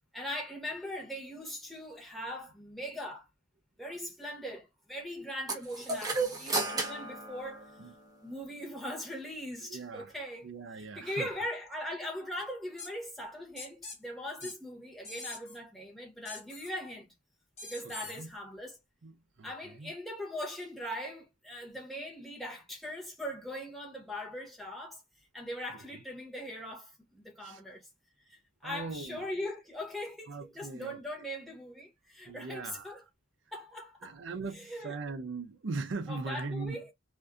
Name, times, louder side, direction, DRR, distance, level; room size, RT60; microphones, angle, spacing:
voice 1, 0.1-3.3 3.8-7.7 8.2-10.5 10.8-17.1 17.6-18.8 19.4-25.0 25.3-27.9 28.2-33.0 33.5-34.2 34.5-34.9 36.1-36.9, left 1 dB, ahead, 1.1 m, -40 dB
sound 1, 5.5-8.2, right 3 dB, 20° right, 0.8 m, -34 dB
voice 2, 9.6-10.1 10.4-11.3 14.4-14.5 18.0-18.3 19.0-19.9 25.9-26.0 27.4-27.6 28.6-29.3 30.3-31.0 32.3-33.1 34.0-36.9, right 3 dB, 70° right, 0.5 m, -40 dB
sound 2, 12.8-12.9 13.6-14.0 14.4-14.6 15.0-15.6 16.3-16.7 17.6-18.2, left 3 dB, 35° left, 1.2 m, -43 dB
2.5 x 2.4 x 2.3 m
head